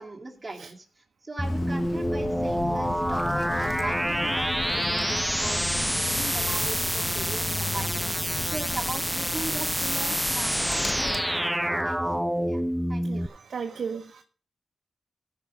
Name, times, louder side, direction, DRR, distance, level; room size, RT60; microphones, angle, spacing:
voice 1, 0.0-8.1 8.4-12.0 12.5-12.6 12.9-13.3, right 2 dB, 25° right, 0 dB, 2.4 m, -39 dB
Bird, 1.4-11.2, left 3 dB, 50° left, 0.8 m, -35 dB
sound 1, 1.4-13.3, equal, 5° right, 0.4 m, -27 dB
voice 2, 13.0-14.2, right 6 dB, 70° right, 4 dB, 0.8 m, -35 dB
15.5 x 5.4 x 5.2 m, 0.42 s
cardioid pair, 70°, 0 cm